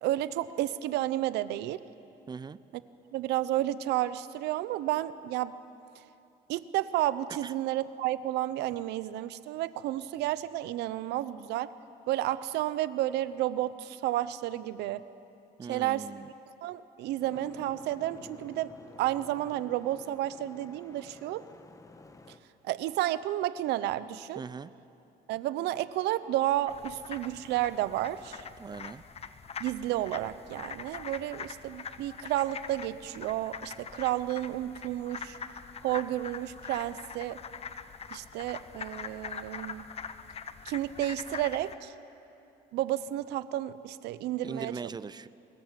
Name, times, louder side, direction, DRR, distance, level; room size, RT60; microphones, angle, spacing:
voice 1, 0.0-1.8 3.1-5.5 6.5-11.7 12.1-15.0 15.7-16.1 16.6-18.7 19.0-21.4 22.6-24.4 25.3-28.4 29.6-35.4 35.8-37.4 38.1-39.9 40.6-41.9 42.7-44.7, right 14 dB, 85° right, 15 dB, 0.8 m, -31 dB
voice 2, 2.3-2.6 7.4-7.5 15.6-16.3 24.4-24.7 28.6-29.0 44.4-45.3, right 5 dB, 25° right, 17 dB, 0.5 m, -40 dB
Boat Water vehicle, 17.2-22.4, left 2 dB, 20° left, 1.3 m, -51 dB
sound 1, 26.7-41.8, left 6 dB, 35° left, 1.0 m, -43 dB
23.0 x 20.0 x 7.6 m, 2.7 s
cardioid pair, 110°, 17 cm